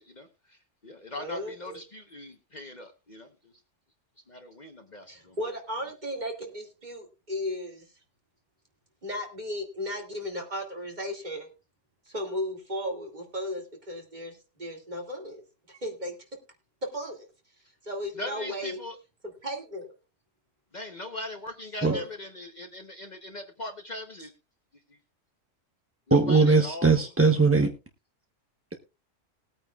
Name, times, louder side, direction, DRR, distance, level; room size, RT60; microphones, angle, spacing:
voice 1, 0.0-3.6 4.3-5.4 18.1-19.0 20.7-24.3 24.9-25.0 26.1-27.1, left 1 dB, 35° left, 6 dB, 1.0 m, -40 dB
voice 2, 1.1-1.8 5.1-7.9 9.0-11.5 12.1-16.2 16.9-17.3 17.8-18.8 19.4-19.9 21.8-22.0, left 1 dB, 35° right, 1 dB, 2.4 m, -35 dB
voice 3, 26.1-27.7, right 4 dB, 15° right, 4 dB, 0.6 m, -20 dB
20.0 x 8.9 x 2.4 m, 0.28 s
omnidirectional pair, 1.3 m